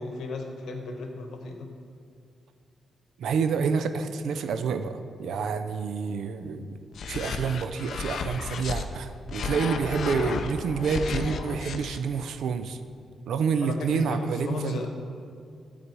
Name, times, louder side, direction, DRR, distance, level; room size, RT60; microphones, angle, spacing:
voice 1, 0.0-1.7 13.6-14.9, left 3 dB, 85° left, 3 dB, 1.0 m, -35 dB
voice 2, 3.2-6.8 7.1-12.8 13.3-14.8, right 5 dB, 80° right, 9 dB, 0.5 m, -28 dB
sound 1, 6.9-8.8 9.3-12.0, left 4 dB, 60° left, 0.5 m, -33 dB
12.5 x 4.1 x 4.7 m, 2.3 s
cardioid pair, 120°, 0 cm